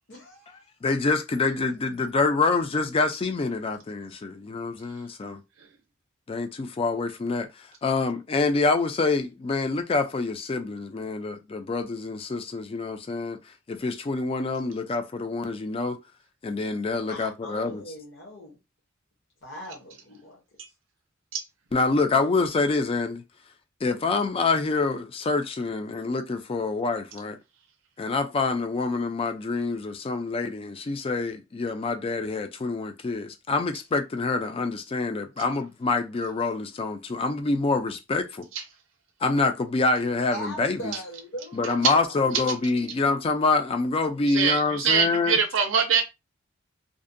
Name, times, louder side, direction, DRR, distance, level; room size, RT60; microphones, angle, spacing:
voice 1, 0.1-0.5 17.1-18.6 19.4-20.4 40.3-42.1, equal, 60° left, 0.8 m, -40 dB
voice 2, 0.8-5.4 6.3-16.0 16.4-17.8 21.7-23.2 23.8-27.4 28.0-38.5 39.2-40.9 41.5-45.4, left 3 dB, 30° left, 0.3 m, -26 dB
voice 3, 44.3-46.0, right 6 dB, 70° right, 0.5 m, -23 dB
2.5 x 2.1 x 2.5 m
head